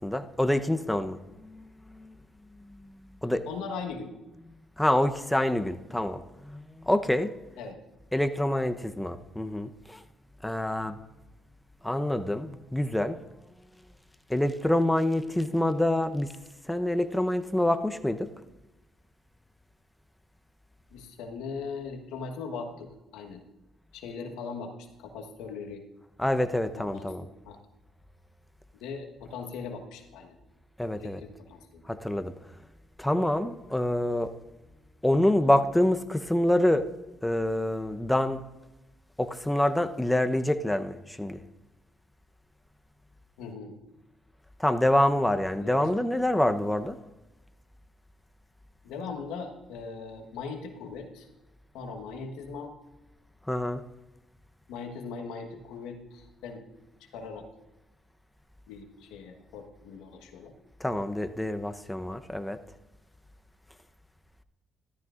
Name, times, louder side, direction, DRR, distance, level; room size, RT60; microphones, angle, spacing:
voice 1, 0.0-2.1 3.2-3.5 4.8-7.3 8.1-10.0 10.4-11.0 11.8-13.2 14.3-16.3 16.7-18.3 26.2-27.3 30.8-31.2 31.9-32.3 33.0-34.3 35.0-36.9 37.2-38.4 39.2-41.4 44.6-47.0 53.5-53.8 60.8-62.6, left 1 dB, 5° left, 9 dB, 0.8 m, -26 dB
voice 2, 3.5-4.1 7.6-7.8 20.9-23.4 23.9-25.8 26.7-27.1 27.4-27.6 28.8-30.4 31.0-31.8 43.4-43.7 45.6-45.9 48.8-51.3 51.7-52.7 54.7-56.6 57.1-57.4 58.7-60.5, left 5 dB, 80° left, 3 dB, 1.3 m, -39 dB
13.5 x 13.0 x 2.5 m, 1.1 s
supercardioid pair, 60°, 0 cm